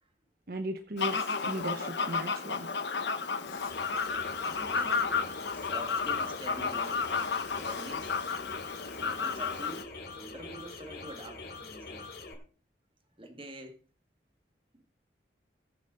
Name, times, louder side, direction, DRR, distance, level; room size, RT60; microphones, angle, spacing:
voice 1, 0.5-2.7, right 1 dB, 55° right, 0.9 m, -37 dB
Fowl, 1.0-9.8, left 5 dB, 75° left, 1.1 m, -32 dB
sound 1, 3.5-12.3, left 3 dB, 60° left, 2.9 m, -44 dB
voice 2, 4.5-7.1 7.6-8.2 9.0-12.1 13.2-13.8 14.7-14.8, right 1 dB, 30° right, 1.8 m, -46 dB
21.0 x 7.1 x 4.0 m
head